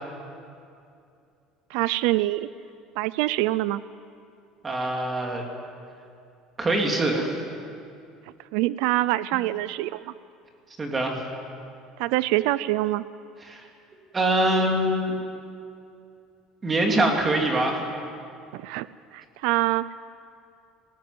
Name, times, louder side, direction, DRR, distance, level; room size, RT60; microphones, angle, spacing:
voice 1, 1.7-2.5 3.0-3.8 8.5-10.1 12.0-13.0 18.5-18.9 19.1-19.9, right 17 dB, 70° right, 17 dB, 0.5 m, -25 dB
voice 2, 4.6-5.5 6.6-7.4 10.8-11.2 13.5-13.6 14.1-15.1 16.6-17.8, right 1 dB, 15° right, 2 dB, 2.6 m, -24 dB
19.5 x 18.5 x 9.5 m, 2.5 s
cardioid pair, 170°, 0 cm